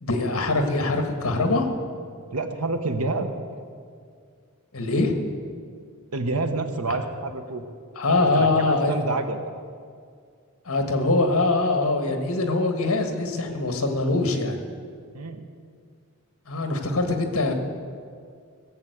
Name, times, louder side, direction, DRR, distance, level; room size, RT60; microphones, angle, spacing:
voice 1, 0.0-1.7 4.7-5.2 8.0-9.0 10.7-14.6 16.5-17.5, left 2 dB, 75° left, 5 dB, 1.7 m, -23 dB
voice 2, 2.3-3.3 6.1-7.6 8.2-9.4 15.1-15.4, right 3 dB, 90° right, 6 dB, 1.2 m, -28 dB
16.0 x 7.4 x 8.0 m, 2.2 s
head